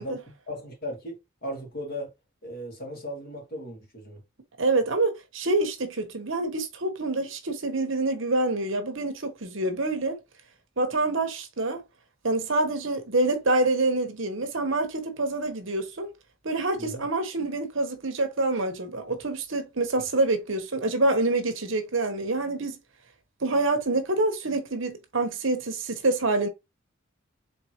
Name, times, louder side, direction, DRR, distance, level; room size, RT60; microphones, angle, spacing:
voice 1, 0.0-2.1 2.4-4.2 16.8-17.1, equal, 45° left, 2.1 m, -37 dB
voice 2, 4.6-10.1 10.8-11.8 12.2-16.1 16.4-22.8 23.4-26.5, right 2 dB, 65° right, 1.0 m, -26 dB
4.6 x 3.5 x 3.0 m
head